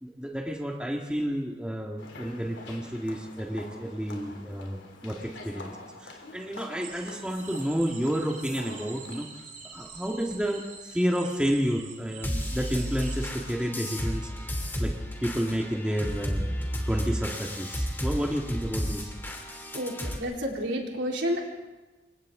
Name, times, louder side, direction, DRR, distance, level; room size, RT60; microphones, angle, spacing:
voice 1, 0.0-5.7 6.0-9.3 9.7-14.3 14.8-15.0 15.2-19.1, equal, 5° right, 0 dB, 1.8 m, -30 dB
sound 1, 2.0-9.2, left 2 dB, 80° left, 3.2 m, -46 dB
sound 2, 6.8-13.3, right 5 dB, 45° right, 2.8 m, -46 dB
sound 3, 12.2-20.2, equal, 10° left, 2.7 m, -32 dB
voice 2, 19.7-21.4, equal, 80° right, -1 dB, 4.0 m, -30 dB
29.0 x 25.5 x 3.8 m, 1.2 s
head